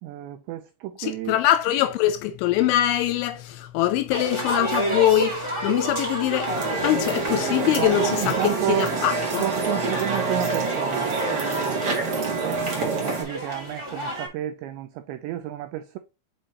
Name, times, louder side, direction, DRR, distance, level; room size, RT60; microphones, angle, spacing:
voice 1, 0.0-1.4 7.7-9.0 9.4-16.0, right 14 dB, 90° right, 2.5 m, -31 dB
voice 2, 1.0-6.5 6.8-8.3 8.7-9.4, left 13 dB, 85° left, 2.8 m, -23 dB
sound 1, 4.1-14.3, right 1 dB, 30° right, 0.5 m, -31 dB
sound 2, 6.5-13.2, right 3 dB, 60° right, 1.6 m, -26 dB
6.4 x 5.4 x 2.9 m
omnidirectional pair, 5.8 m